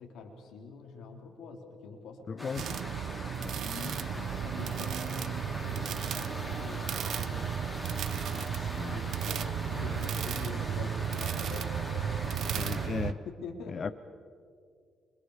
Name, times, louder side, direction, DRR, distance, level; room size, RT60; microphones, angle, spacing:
voice 1, 0.0-2.8 3.6-7.6 8.2-8.3 8.9-13.0 13.3-13.9, left 4 dB, 85° left, 2 dB, 3.9 m, -45 dB
voice 2, 2.3-2.6 3.4-3.5 8.6-8.9 12.5-13.2 13.7-13.9, left 5 dB, 45° left, 12 dB, 0.7 m, -35 dB
sound 1, 2.4-12.9, equal, ahead, 5.5 m, -41 dB
sound 2, 2.5-13.1, right 9 dB, 70° right, 0.6 m, -34 dB
29.5 x 25.5 x 5.0 m, 2.1 s
cardioid pair, 90°, 0 cm